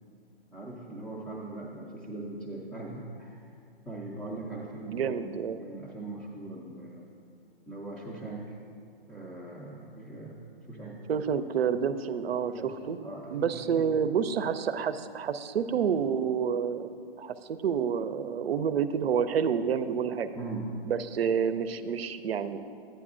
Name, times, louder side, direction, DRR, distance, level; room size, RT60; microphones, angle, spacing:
voice 1, 0.5-3.5 3.9-5.3 5.6-7.0 7.7-8.6 9.1-10.4 10.7-11.0 12.4-13.9 20.3-20.7, right 2 dB, 5° left, -8 dB, 0.4 m, -40 dB
voice 2, 4.9-5.6 11.1-13.0 13.3-16.9 17.2-20.3 20.9-22.6, right 7 dB, 80° right, 11 dB, 0.5 m, -29 dB
11.0 x 9.2 x 2.5 m, 2.4 s
hypercardioid pair, 135°, 30 cm